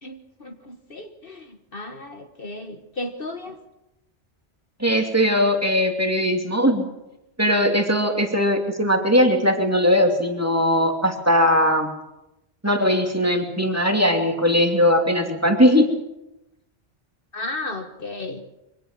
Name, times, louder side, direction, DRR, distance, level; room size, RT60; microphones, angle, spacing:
voice 1, 0.0-3.6 17.3-18.4, left 2 dB, 50° left, 6 dB, 1.6 m, -34 dB
voice 2, 4.8-6.9 7.4-11.9 12.6-15.9, equal, 15° right, 3 dB, 2.7 m, -19 dB
24.5 x 18.0 x 7.4 m, 0.93 s
omnidirectional pair, 1.2 m